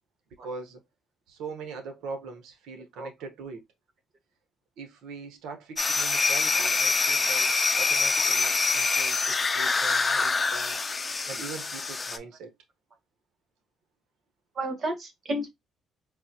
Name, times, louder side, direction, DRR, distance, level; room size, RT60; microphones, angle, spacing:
voice 1, 0.4-0.8 1.3-3.6 4.8-7.5 7.8-10.8 11.3-12.5, right 4 dB, 90° right, 1.1 m, -41 dB
sound 1, 5.8-12.2, left 4 dB, 30° left, 0.6 m, -25 dB
voice 2, 14.5-15.5, right 1 dB, 50° right, 1.5 m, -32 dB
3.9 x 2.7 x 2.9 m
cardioid pair, 90°, 0 cm